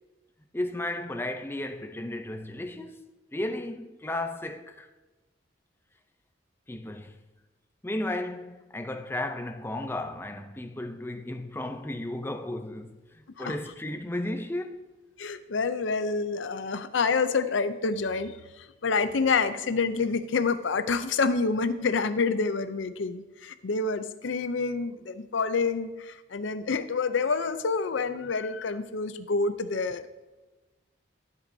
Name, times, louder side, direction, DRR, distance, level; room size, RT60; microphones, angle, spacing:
voice 1, 0.5-3.1 3.3-4.9 6.7-7.2 7.8-14.8, left 1 dB, 10° left, 0.5 m, -34 dB
voice 2, 15.2-30.0, left 4 dB, 65° left, 0.6 m, -28 dB
13.5 x 8.1 x 2.7 m
head